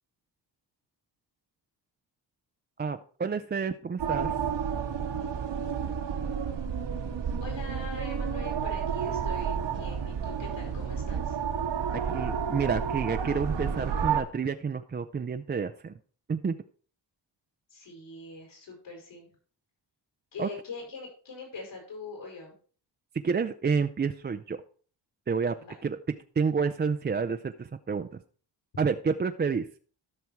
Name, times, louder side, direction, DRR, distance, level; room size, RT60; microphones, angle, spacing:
voice 1, 2.8-4.3 11.9-15.9 16.3-16.5 20.4-20.5 23.2-24.6 25.3-25.5 25.8-26.0 26.4-28.2 28.8-29.7, right 5 dB, 25° right, 8 dB, 0.4 m, -29 dB
sound 1, 4.0-14.2, right 7 dB, 70° right, 1.5 m, -31 dB
voice 2, 7.4-11.4 17.7-19.3 20.3-22.5 25.6-25.8, left 4 dB, 75° left, 0 dB, 6.1 m, -43 dB
13.0 x 5.9 x 4.5 m, 0.41 s
cardioid pair, 100°, 44 cm